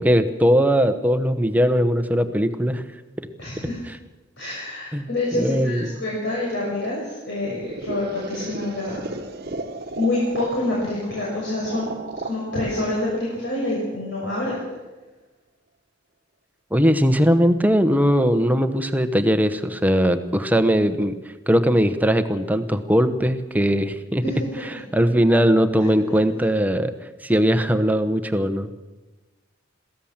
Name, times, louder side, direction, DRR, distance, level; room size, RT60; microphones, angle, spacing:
voice 1, 0.0-2.8 3.2-3.3 4.9-5.9 16.7-21.2 21.5-24.2 24.9-26.9 27.2-28.7, equal, 10° right, 8 dB, 1.1 m, -20 dB
voice 2, 3.4-3.8 4.4-9.2 9.9-12.0 12.2-14.6 24.2-24.8 25.8-25.9, left 2 dB, 65° left, -4 dB, 5.9 m, -27 dB
sound 1, 7.4-14.3, right 2 dB, 50° right, 1.3 m, -35 dB
22.0 x 16.0 x 7.4 m, 1.2 s
head